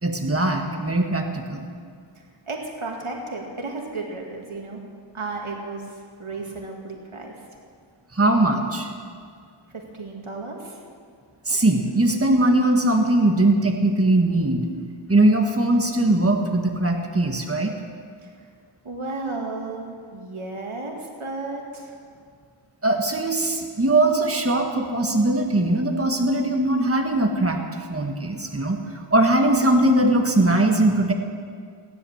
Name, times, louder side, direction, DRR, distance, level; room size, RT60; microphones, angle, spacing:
voice 1, 0.0-1.7 8.1-8.9 11.4-14.6 15.1-17.7 22.8-27.6 27.9-28.8 29.1-31.1, right 1 dB, 30° right, 3 dB, 1.6 m, -20 dB
voice 2, 2.2-4.8 5.1-7.3 9.7-10.8 18.2-18.5 18.8-22.1, right 3 dB, 85° right, 1 dB, 2.1 m, -34 dB
16.5 x 10.5 x 7.2 m, 2.1 s
wide cardioid pair, 40°, 48 cm